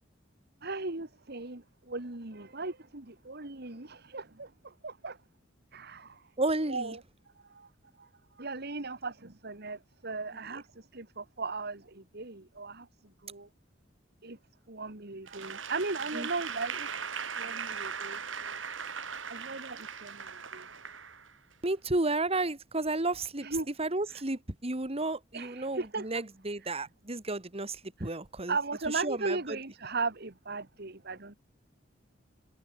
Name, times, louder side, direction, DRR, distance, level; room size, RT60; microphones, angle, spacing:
voice 1, 0.6-5.2 5.7-6.3 6.7-7.0 7.4-7.7 8.0-8.1 8.4-12.9 13.2-13.5 14.2-14.4 14.7-16.9 17.3-18.6 19.3-20.7 23.4-23.7 24.1-24.2 25.3-26.1 28.5-31.3, right 3 dB, 55° right, 2.4 m, -37 dB
voice 2, 6.4-7.0 16.1-16.3 21.6-28.6 28.9-29.6, right 2 dB, 30° right, 2.2 m, -32 dB
Applause / Crowd, 15.3-21.5, right 6 dB, 80° right, 5.8 m, -39 dB
head